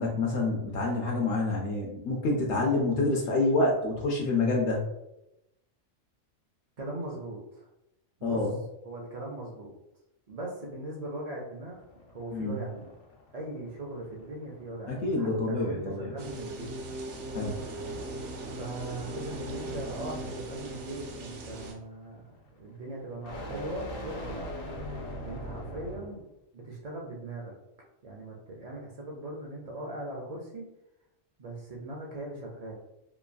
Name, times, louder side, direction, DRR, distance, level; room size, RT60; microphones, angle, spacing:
voice 1, 0.0-4.8 8.2-8.6 12.3-12.6 14.9-16.1 17.3-17.6, left 2 dB, 70° left, 0 dB, 0.8 m, -27 dB
voice 2, 6.8-7.7 8.2-8.4 8.8-9.7 10.3-11.8 12.1-12.9 13.3-16.7 18.6-24.5 25.2-26.2 26.5-27.5 28.0-30.7 31.4-32.7, right 2 dB, 85° right, -2 dB, 0.3 m, -39 dB
sound 1, 11.7-26.2, left 1 dB, 90° left, 1.1 m, -44 dB
sound 2, 16.2-21.7, right 1 dB, 70° right, 0.9 m, -38 dB
3.0 x 2.4 x 2.2 m, 0.87 s
omnidirectional pair, 1.3 m